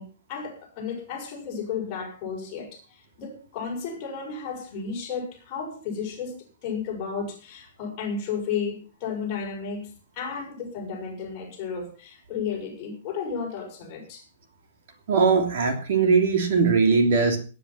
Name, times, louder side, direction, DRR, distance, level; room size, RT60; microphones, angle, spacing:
voice 1, 0.0-6.4 6.6-14.2, left 6 dB, 25° left, -1 dB, 6.5 m, -33 dB
voice 2, 15.1-17.4, right 4 dB, 50° right, 5 dB, 3.1 m, -20 dB
18.5 x 9.9 x 5.8 m, 0.37 s
hypercardioid pair, 180°, 0 cm